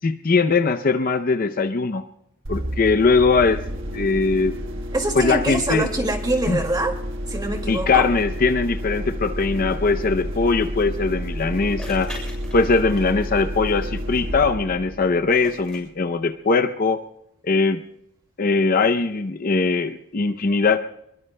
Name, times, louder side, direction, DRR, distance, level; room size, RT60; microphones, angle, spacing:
voice 1, 0.0-2.0 2.5-3.6 3.9-4.5 5.2-5.9 6.5-6.6 7.7-12.1 12.5-17.0 17.4-17.8 18.4-20.8, left 4 dB, 40° left, 8 dB, 0.6 m, -20 dB
sound 1, 2.4-15.9, equal, 60° right, 1.4 m, -30 dB
voice 2, 4.9-6.9 7.3-8.1, right 2 dB, 20° right, 4 dB, 2.1 m, -24 dB
sound 2, 11.8-13.3 15.3-15.8, left 1 dB, 5° left, 7.4 m, -40 dB
26.5 x 22.5 x 2.2 m, 0.79 s
head